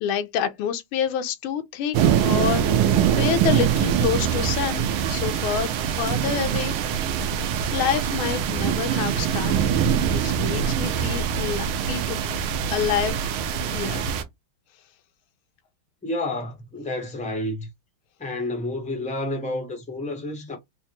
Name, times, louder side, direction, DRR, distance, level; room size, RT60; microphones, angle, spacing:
voice 1, 0.0-2.0 2.2-6.8 7.7-9.8 10.1-12.2 12.7-13.3 13.7-14.1, left 8 dB, 85° left, 1.5 m, -28 dB
sound 1, 1.9-14.2, right 8 dB, 85° right, 1.5 m, -23 dB
voice 2, 16.0-17.7 18.2-20.6, left 1 dB, 10° left, 0.4 m, -30 dB
4.5 x 2.1 x 2.9 m
omnidirectional pair, 2.3 m